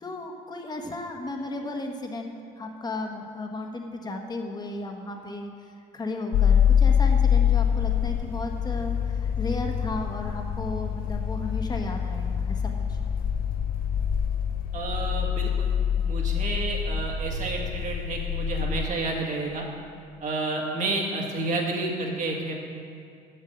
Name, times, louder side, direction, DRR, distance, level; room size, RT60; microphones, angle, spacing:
voice 1, 0.0-13.0, left 2 dB, 25° left, 2 dB, 1.3 m, -34 dB
sound 1, 6.3-18.9, left 8 dB, 60° left, 0.5 m, -25 dB
voice 2, 14.7-15.7 16.0-19.6 20.2-22.5, right 2 dB, 45° right, 0 dB, 1.9 m, -30 dB
7.6 x 7.2 x 7.9 m, 2.4 s
cardioid pair, 110°, 17 cm